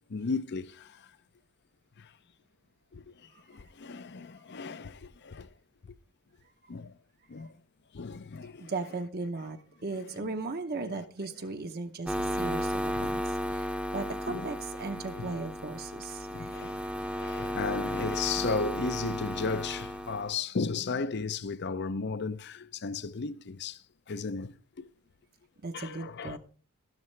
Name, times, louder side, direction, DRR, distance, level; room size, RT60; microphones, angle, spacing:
voice 1, 0.1-1.1 2.0-2.1 2.9-3.1 3.5-5.5 6.7-6.9 7.3-7.5 7.9-8.7 10.0-10.3 10.9-11.1 12.3-12.5 12.9-13.1 14.3-14.5 15.2-15.4 16.3-23.8 24.1-24.9 25.7-26.4, left 4 dB, 50° left, 0.5 m, -35 dB
voice 2, 8.6-16.3 25.6-26.4, right 3 dB, 45° right, 0.8 m, -37 dB
sound 1, 12.1-20.3, equal, 5° right, 0.7 m, -34 dB
12.5 x 11.5 x 3.2 m
head